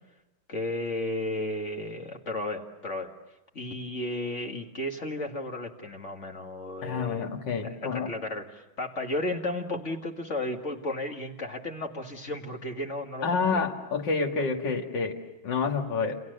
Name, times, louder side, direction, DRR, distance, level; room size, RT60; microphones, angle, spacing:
voice 1, 0.5-3.1 3.5-7.3 7.6-13.7, left 1 dB, 35° left, 3 dB, 2.2 m, -34 dB
voice 2, 6.8-8.1 13.2-16.2, left 4 dB, 60° left, 2 dB, 2.6 m, -28 dB
29.5 x 28.5 x 6.7 m, 0.99 s
omnidirectional pair, 2.2 m